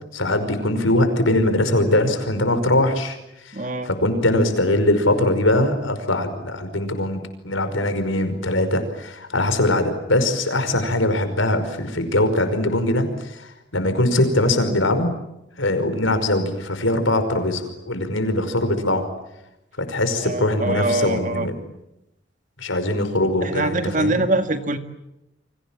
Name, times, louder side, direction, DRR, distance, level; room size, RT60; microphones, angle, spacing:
voice 1, 0.1-3.2 3.5-3.6 3.8-15.1 15.6-19.1 19.8-21.6 22.6-24.2, left 1 dB, 85° left, 9 dB, 5.3 m, -21 dB
voice 2, 3.5-3.9 20.2-21.5 23.4-24.8, right 2 dB, 40° right, 8 dB, 1.9 m, -23 dB
30.0 x 25.0 x 7.5 m, 0.87 s
head